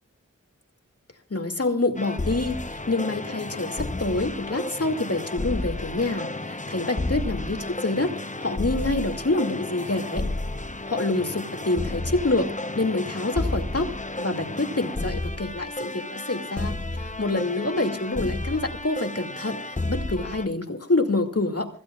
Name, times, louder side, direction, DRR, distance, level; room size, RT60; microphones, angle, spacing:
voice 1, 1.3-10.2 10.9-12.5 12.8-13.9 14.2-21.7, left 2 dB, 50° left, 5 dB, 2.4 m, -27 dB
sound 1, 2.0-20.5, left 2 dB, 25° left, 0.8 m, -32 dB
26.5 x 16.0 x 2.4 m, 0.39 s
wide cardioid pair, 40°, 31 cm